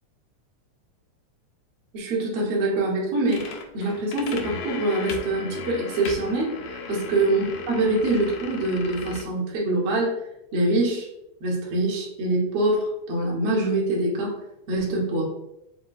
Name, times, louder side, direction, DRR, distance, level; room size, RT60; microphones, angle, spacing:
voice 1, 1.9-10.2 10.5-11.1 11.4-14.4 14.7-15.3, right 2 dB, 60° right, -4 dB, 1.7 m, -24 dB
sound 1, 3.3-9.2, left 5 dB, 80° left, 1.4 m, -36 dB
4.9 x 2.2 x 3.8 m, 0.85 s
omnidirectional pair, 3.4 m